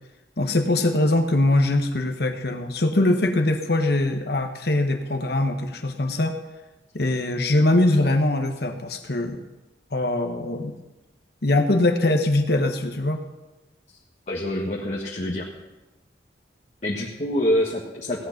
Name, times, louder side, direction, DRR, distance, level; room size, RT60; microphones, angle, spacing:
voice 1, 0.4-6.4 6.9-9.4 9.9-10.7 11.4-13.2, left 2 dB, 60° left, 5 dB, 1.3 m, -22 dB
voice 2, 14.3-15.5 16.8-18.3, left 1 dB, 40° left, -4 dB, 1.5 m, -26 dB
16.5 x 9.5 x 5.9 m, 1.0 s
head